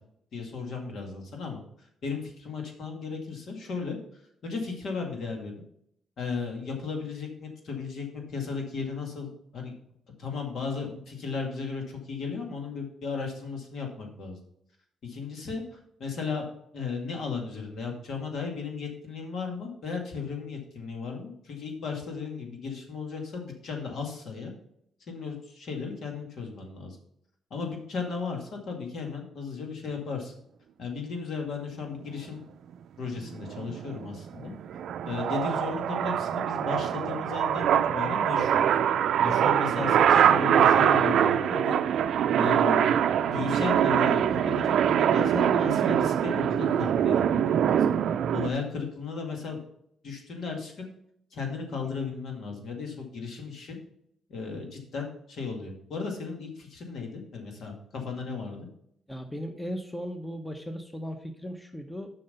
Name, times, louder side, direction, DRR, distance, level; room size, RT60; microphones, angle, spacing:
voice 1, 0.3-4.0 4.4-5.5 6.2-9.7 10.2-14.4 15.0-16.4 16.7-24.5 25.1-27.0 27.5-30.4 30.8-32.4 33.0-34.5 35.0-38.6 39.2-41.8 42.4-42.9 43.2-47.9 48.3-49.6 50.0-50.9 51.3-53.8 54.3-58.7, left 5 dB, 65° left, 2 dB, 2.2 m, -35 dB
sound 1, 33.2-48.5, right 9 dB, 70° right, 0.4 m, -24 dB
voice 2, 59.1-62.1, equal, 5° left, 6 dB, 0.9 m, -37 dB
7.2 x 5.7 x 5.5 m, 0.70 s
cardioid pair, 90°, 0 cm